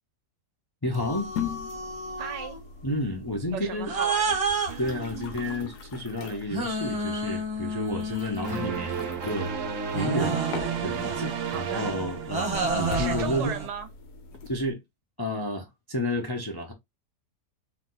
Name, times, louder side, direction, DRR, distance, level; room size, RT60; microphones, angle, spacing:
voice 1, 0.8-1.3 2.8-3.9 4.8-10.4 10.8-13.5 14.5-14.8 15.2-16.7, left 1 dB, 25° left, 0.5 m, -31 dB
sound 1, 0.9-14.7, left 5 dB, 75° left, 1.3 m, -41 dB
sound 2, 0.9-2.6 3.9-5.7 6.5-9.0 9.9-13.7, right 3 dB, 25° right, 1.0 m, -31 dB
voice 2, 2.2-2.6 3.5-4.4 4.7-4.9 11.5-11.9 12.9-13.9, right 8 dB, 85° right, 1.5 m, -36 dB
sound 3, 8.4-12.9, right 6 dB, 55° right, 1.0 m, -33 dB
4.7 x 2.3 x 3.9 m
omnidirectional pair, 1.8 m